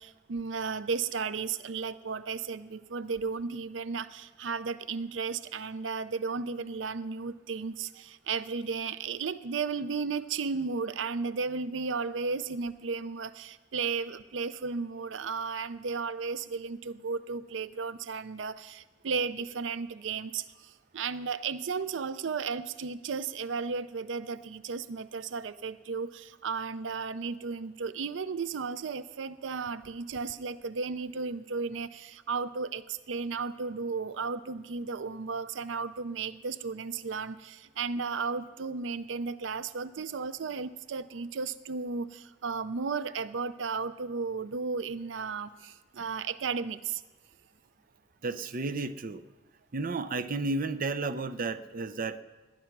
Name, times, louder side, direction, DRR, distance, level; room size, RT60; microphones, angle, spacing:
voice 1, 0.0-47.0, right 5 dB, 90° right, 15 dB, 0.5 m, -34 dB
voice 2, 48.2-49.2 49.7-52.2, right 3 dB, 50° right, 12 dB, 0.6 m, -32 dB
19.0 x 10.5 x 6.0 m, 1.3 s
head